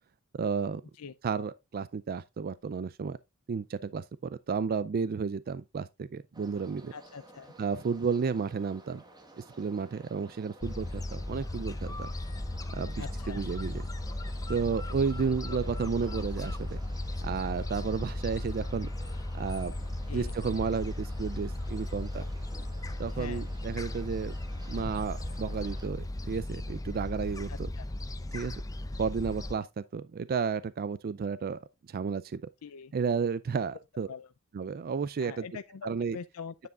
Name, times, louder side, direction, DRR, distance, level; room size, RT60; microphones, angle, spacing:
voice 1, 0.4-0.8 1.2-3.2 3.5-6.9 7.6-9.0 9.4-12.1 12.7-13.7 14.5-16.8 17.2-18.9 19.4-19.7 20.1-22.3 23.0-24.4 24.7-27.7 28.3-28.5 29.0-32.4 32.9-34.1 34.5-35.5 35.8-36.2, right 5 dB, 45° right, 0.4 m, -32 dB
sound 1, 6.3-25.9, right 1 dB, 20° right, 1.4 m, -54 dB
voice 2, 6.9-7.5 13.0-13.4 15.3-15.4 20.1-20.3 23.1-23.5 27.5-27.8 32.6-32.9 34.1-34.3 35.2-36.7, left 6 dB, 75° left, 0.5 m, -43 dB
Gull seagull, 10.6-29.6, left 1 dB, 15° left, 0.6 m, -36 dB
9.5 x 7.7 x 2.4 m
head